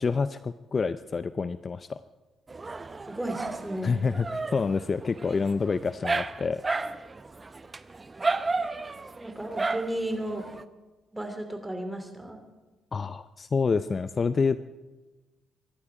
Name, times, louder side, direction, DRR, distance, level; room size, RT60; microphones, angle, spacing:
voice 1, 0.0-2.0 3.8-6.6 12.9-14.6, left 5 dB, 35° left, 13 dB, 0.5 m, -27 dB
Dog, 2.5-10.6, right 3 dB, 25° right, 0.7 m, -33 dB
voice 2, 3.1-4.0 9.2-10.5 11.1-12.4, right 1 dB, 10° right, 6 dB, 2.8 m, -34 dB
24.5 x 11.5 x 4.9 m, 1.2 s
cardioid pair, 90°, 0 cm